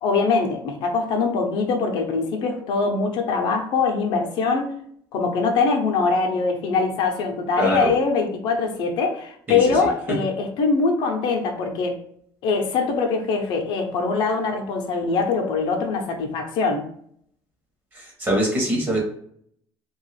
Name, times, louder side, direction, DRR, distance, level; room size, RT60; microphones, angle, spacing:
voice 1, 0.0-4.7 5.1-12.0 12.4-16.9, left 4 dB, 60° left, 3 dB, 0.6 m, -23 dB
voice 2, 7.6-7.9 9.5-10.2 17.9-19.0, right 1 dB, 20° right, -1 dB, 0.9 m, -24 dB
2.9 x 2.3 x 3.2 m, 0.66 s
cardioid pair, 170°, 9 cm